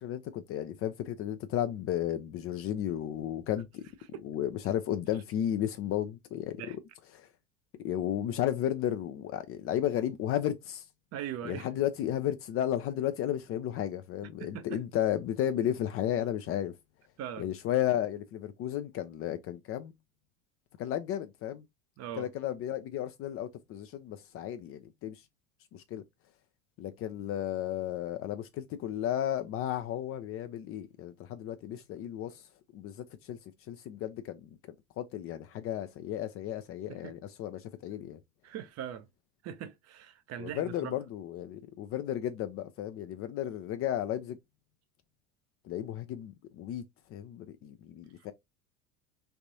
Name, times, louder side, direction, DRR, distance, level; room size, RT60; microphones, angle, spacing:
voice 1, 0.0-3.8 4.2-6.8 7.1-7.3 7.8-10.8 11.4-16.8 17.4-19.9 20.8-21.7 22.2-25.2 25.7-26.0 26.8-32.4 32.7-33.4 33.7-34.5 35.0-38.2 40.4-44.4 45.6-46.8 47.1-48.3, left 11 dB, 35° left, 0.4 m, -33 dB
voice 2, 11.1-11.7 14.4-14.8 17.2-17.5 22.0-22.3 36.9-37.1 38.4-39.1 39.4-40.9 48.2-48.3, right 10 dB, 40° right, 0.6 m, -40 dB
3.3 x 2.5 x 2.7 m
hypercardioid pair, 75°, 41 cm